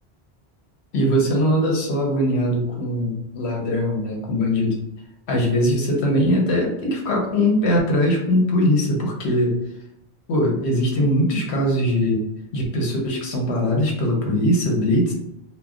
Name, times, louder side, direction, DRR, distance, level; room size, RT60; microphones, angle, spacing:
voice 1, 0.9-4.7 5.3-9.5 10.3-12.2 12.5-15.1, equal, 85° left, -1 dB, 1.1 m, -21 dB
2.3 x 2.1 x 3.6 m, 0.79 s
omnidirectional pair, 1.1 m